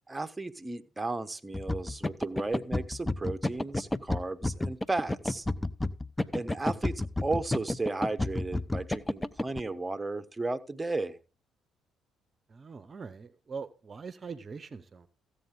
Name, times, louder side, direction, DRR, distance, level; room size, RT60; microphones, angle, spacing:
voice 1, 0.1-5.5 6.3-11.2, right 2 dB, 20° right, 1.0 m, -34 dB
sound 1, 1.5-9.6, left 2 dB, 15° left, 0.6 m, -31 dB
voice 2, 12.5-15.1, right 5 dB, 40° right, 0.7 m, -42 dB
14.5 x 8.3 x 3.8 m
hypercardioid pair, 55°, 0 cm